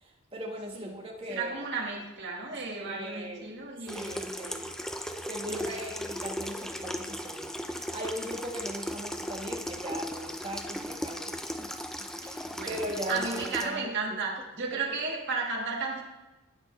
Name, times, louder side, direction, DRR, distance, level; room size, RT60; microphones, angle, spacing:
voice 1, 0.0-1.7 2.8-3.5 3.9-4.7 5.3-11.8 12.2-13.9, equal, 25° right, 0 dB, 1.4 m, -39 dB
voice 2, 1.3-4.4 5.5-5.8 12.2-12.8 13.1-16.0, right 4 dB, 55° right, -1 dB, 1.5 m, -34 dB
Water tap faucet / Sink (filling or washing), 3.9-13.6, equal, ahead, 0.4 m, -37 dB
17.5 x 6.1 x 3.2 m, 1.1 s
head